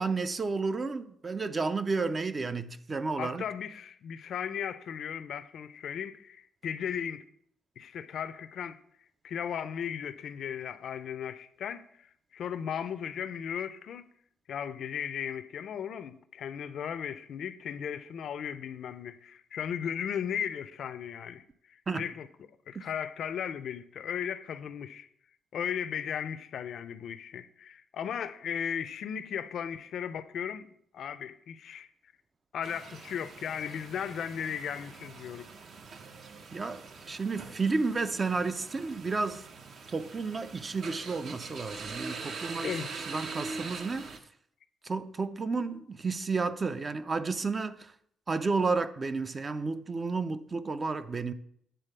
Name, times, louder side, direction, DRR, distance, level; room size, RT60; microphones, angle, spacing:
voice 1, 0.0-3.5 21.9-22.1 22.8-22.9 36.5-39.4 39.9-44.1 44.8-47.9 48.3-51.3, right 4 dB, 30° right, 0.5 m, -32 dB
voice 2, 3.2-7.2 7.8-8.8 9.2-11.9 12.3-14.1 14.5-22.3 22.7-25.1 25.5-30.7 30.9-31.9 32.5-35.5 42.6-43.0, left 8 dB, 65° left, 0.5 m, -36 dB
sound 1, 32.6-44.2, right 4 dB, 55° right, 0.9 m, -43 dB
9.1 x 4.0 x 6.6 m
cardioid pair, 120°, 0 cm